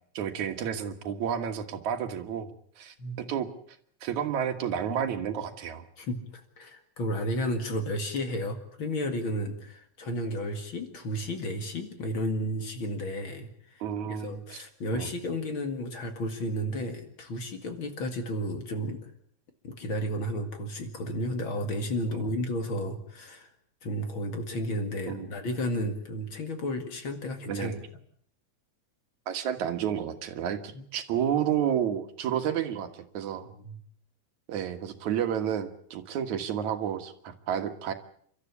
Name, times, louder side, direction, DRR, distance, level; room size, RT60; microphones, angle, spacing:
voice 1, 0.1-2.5 2.8-3.5 4.0-5.9 13.8-14.6 14.9-15.1 22.2-22.3 25.1-25.3 27.5-27.8 29.3-33.5 34.5-37.9, right 9 dB, 75° right, 7 dB, 2.9 m, -31 dB
voice 2, 6.0-13.8 14.1-19.1 19.6-23.5 23.8-27.8 30.7-30.8 33.6-33.8, equal, 45° left, 6 dB, 2.6 m, -32 dB
29.5 x 13.0 x 8.4 m, 0.64 s
omnidirectional pair, 3.4 m